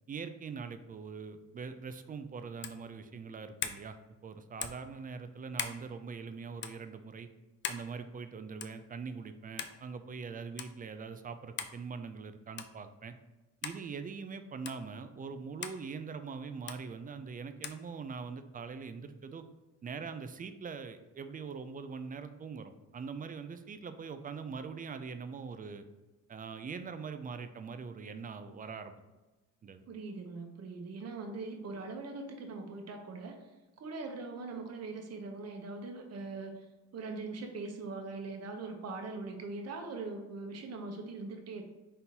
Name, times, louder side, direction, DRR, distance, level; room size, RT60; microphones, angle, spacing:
voice 1, 0.1-4.0 4.2-7.3 7.7-13.1 13.6-19.4 19.8-25.8 26.3-29.0 29.6-29.8, right 5 dB, 30° right, 9 dB, 0.4 m, -42 dB
sound 1, 2.6-2.8 3.6-3.8 4.6-4.9 5.6-5.8 6.6-6.8 7.6-7.9 8.6-8.8 9.6-9.8 10.6-10.7 11.6-11.8 12.6-12.8 13.6-13.8 14.7-14.8 15.6-15.8 16.7-16.8 17.6-17.8, left 7 dB, 40° left, 0.4 m, -39 dB
voice 2, 29.9-33.4 33.8-36.6 36.9-41.6, right 3 dB, 55° right, 4 dB, 0.8 m, -41 dB
4.3 x 3.7 x 2.8 m, 1.1 s
cardioid pair, 90°, 30 cm